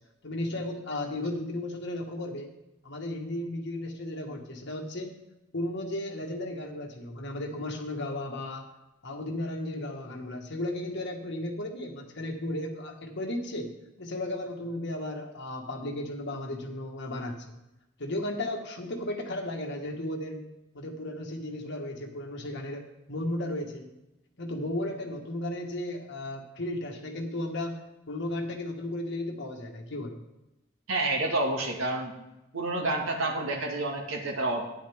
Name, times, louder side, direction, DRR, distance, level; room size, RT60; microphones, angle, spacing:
voice 1, 0.2-2.5 2.8-5.2 5.5-8.7 9.0-17.4 18.0-20.4 20.7-23.9 24.4-30.2, left 1 dB, 60° left, 1 dB, 1.6 m, -35 dB
voice 2, 30.9-32.2 32.5-34.6, right 2 dB, 80° right, 0 dB, 2.0 m, -29 dB
11.5 x 9.8 x 3.6 m, 0.92 s
head